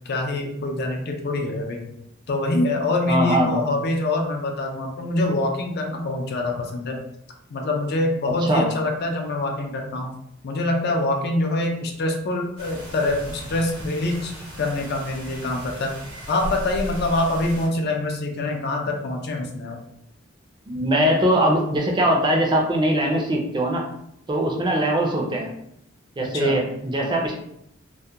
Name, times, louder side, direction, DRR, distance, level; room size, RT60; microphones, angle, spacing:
voice 1, 0.1-1.9 2.3-7.0 7.5-10.1 10.4-15.9 16.3-19.8 26.3-26.6, left 2 dB, 50° left, 2 dB, 0.4 m, -25 dB
voice 2, 3.1-3.6 8.3-8.7 20.7-23.8 24.3-25.5 26.2-27.4, right 1 dB, 20° right, 0 dB, 0.4 m, -21 dB
sound 1, 12.6-17.7, equal, 80° right, 0.8 m, -37 dB
2.3 x 2.1 x 2.7 m, 0.76 s
head